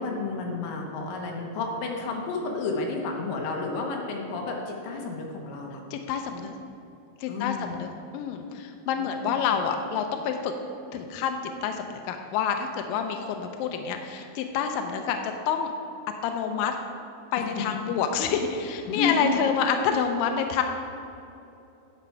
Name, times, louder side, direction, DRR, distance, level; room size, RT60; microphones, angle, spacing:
voice 1, 0.0-5.8 7.3-7.8 9.0-9.2 17.5-17.7 18.9-19.5, left 3 dB, 70° left, 1 dB, 2.3 m, -31 dB
voice 2, 5.9-6.5 7.2-10.5 10.9-15.7 16.2-16.8 17.3-20.6, left 7 dB, 90° left, 5 dB, 2.0 m, -28 dB
10.0 x 5.8 x 4.5 m, 2.7 s
omnidirectional pair, 4.6 m